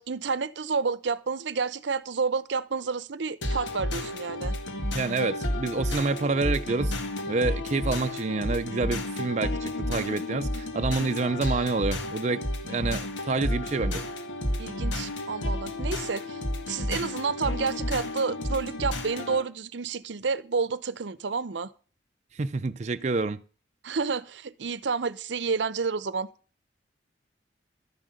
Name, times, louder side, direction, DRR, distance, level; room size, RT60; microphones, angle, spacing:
voice 1, 0.0-4.6 14.6-16.4 16.7-21.7 23.8-26.3, right 5 dB, 75° right, 0.7 m, -30 dB
sound 1, 3.4-19.4, left 1 dB, 90° left, 2.0 m, -31 dB
voice 2, 4.9-6.9 7.3-14.0 22.3-23.4, right 3 dB, 40° right, 0.5 m, -28 dB
13.0 x 7.6 x 6.4 m
head